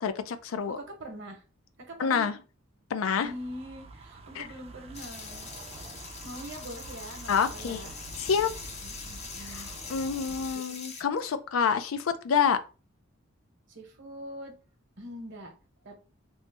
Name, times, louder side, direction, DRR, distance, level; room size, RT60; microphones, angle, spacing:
voice 1, 0.0-0.8 2.0-2.4 2.9-3.3 4.4-4.5 7.3-7.9 8.2-8.5 9.5-9.6 9.9-12.6, left 6 dB, 90° left, 0.4 m, -27 dB
voice 2, 0.7-1.4 1.9-2.3 3.2-5.5 6.2-7.9 8.8-9.7 13.7-14.6 15.0-15.5 15.8-15.9, right 1 dB, 60° right, 0.9 m, -43 dB
sound 1, 3.3-10.6, right 2 dB, 30° right, 0.4 m, -46 dB
sound 2, 4.9-11.0, left 5 dB, 35° left, 0.5 m, -43 dB
3.1 x 2.0 x 3.2 m
head